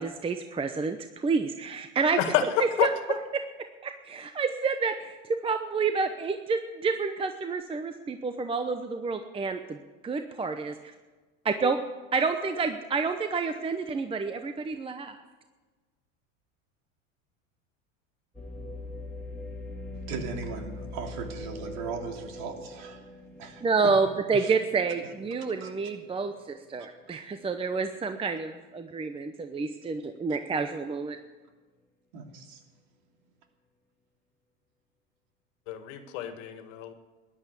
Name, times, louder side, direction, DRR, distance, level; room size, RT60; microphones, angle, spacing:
voice 1, 0.0-2.9 3.3-3.4 3.8-9.8 10.0-10.7 11.4-11.8 12.1-15.2 23.6-31.2, right 4 dB, 15° right, 8 dB, 0.8 m, -29 dB
voice 2, 2.2-3.2 35.7-36.9, left 11 dB, 75° left, 9 dB, 1.9 m, -29 dB
sound 1, 18.3-28.3 28.8-28.9 29.5-29.9, left 2 dB, 5° left, 2.7 m, -43 dB
voice 3, 20.1-23.1 23.4-23.9 24.4-24.5 25.6-25.7 32.1-32.6, right 5 dB, 65° right, 3 dB, 3.2 m, -38 dB
14.5 x 11.0 x 8.3 m, 1.3 s
supercardioid pair, 120°, 38 cm